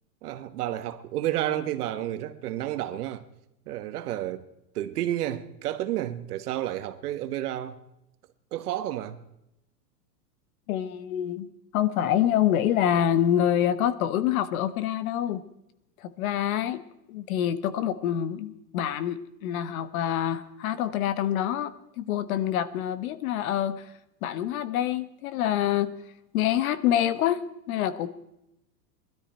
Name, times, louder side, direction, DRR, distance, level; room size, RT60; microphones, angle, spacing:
voice 1, 0.2-3.2 3.7-4.5 4.7-7.8 8.5-9.2, right 13 dB, 65° right, 1.5 m, -31 dB
voice 2, 10.7-15.4 16.0-16.8 17.1-23.9 24.2-25.9 26.3-27.4 27.7-28.1, left 10 dB, 55° left, 1.3 m, -26 dB
20.5 x 13.0 x 4.5 m
supercardioid pair, 155°, 49 cm